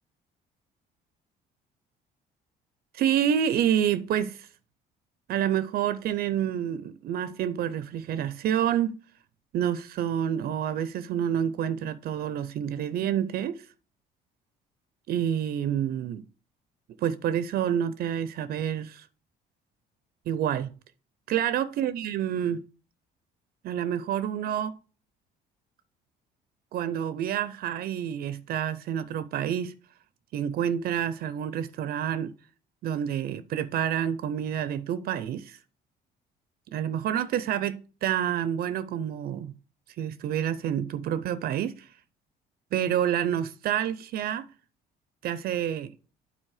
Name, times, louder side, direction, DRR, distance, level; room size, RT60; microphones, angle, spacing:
voice 1, 2.9-4.5 5.3-9.0 9.5-13.7 15.1-16.2 17.0-19.1 20.3-20.7 21.3-22.6 23.6-24.8 26.7-29.7 30.3-32.3 32.8-35.6 36.7-39.5 40.0-41.9 42.7-44.5 45.2-45.9, right 9 dB, 65° right, 0.5 m, -28 dB
9.0 x 4.1 x 4.8 m
cardioid pair, 110°, 17 cm